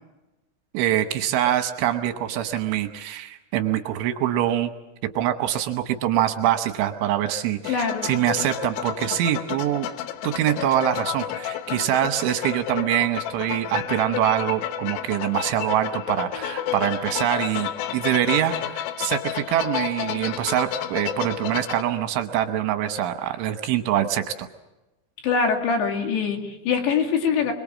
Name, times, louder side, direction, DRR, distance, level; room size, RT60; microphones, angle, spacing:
voice 1, 0.7-4.7 5.2-9.9 10.2-24.5, right 11 dB, 75° right, 8 dB, 3.2 m, -24 dB
sound 1, 7.6-21.8, left 11 dB, 80° left, 3.8 m, -31 dB
voice 2, 7.7-8.1 25.2-27.5, left 5 dB, 65° left, 3 dB, 4.3 m, -23 dB
26.0 x 22.0 x 7.4 m, 1.0 s
omnidirectional pair, 6.0 m